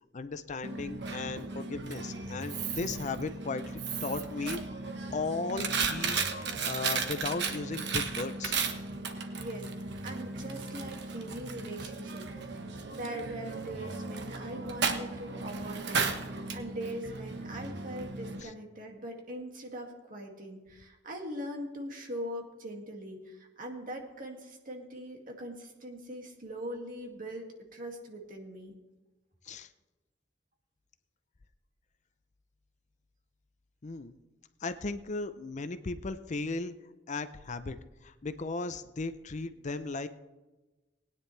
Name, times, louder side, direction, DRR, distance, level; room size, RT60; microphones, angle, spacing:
voice 1, 0.1-4.6 5.1-8.6 18.4-18.5 29.4-29.7 33.8-34.2 34.6-36.7 37.1-37.8 38.0-40.1, left 3 dB, 40° left, 12 dB, 0.6 m, -36 dB
Coin (dropping), 0.6-18.4, right 4 dB, 65° right, 1.2 m, -35 dB
voice 2, 9.4-9.7 10.0-12.6 12.9-28.7, right 1 dB, 50° right, 1 dB, 2.2 m, -41 dB
20.0 x 9.9 x 3.3 m, 1.2 s
head